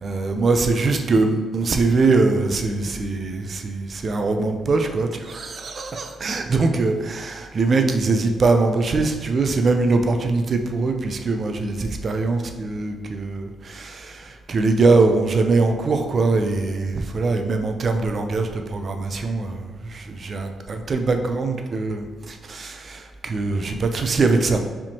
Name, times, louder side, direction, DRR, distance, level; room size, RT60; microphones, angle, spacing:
voice 1, 0.0-24.6, right 3 dB, 40° right, 5 dB, 0.4 m, -22 dB
5.1 x 3.5 x 2.7 m, 1.4 s
cardioid pair, 140°, 0 cm